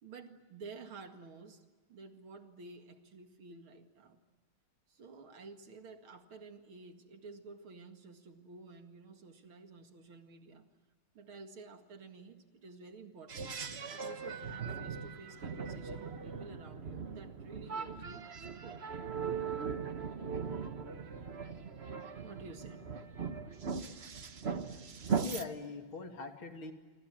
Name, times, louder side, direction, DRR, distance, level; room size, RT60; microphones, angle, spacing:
voice 1, 0.0-1.6 1.9-4.2 4.9-10.6 11.1-13.5 13.9-18.8 22.2-22.9, right 4 dB, 80° right, 6 dB, 2.9 m, -52 dB
sound 1, 13.3-25.4, right 6 dB, 35° right, 1.2 m, -39 dB
voice 2, 24.7-26.7, left 4 dB, 80° left, 5 dB, 3.4 m, -43 dB
27.0 x 26.0 x 7.5 m, 1.4 s
omnidirectional pair, 2.3 m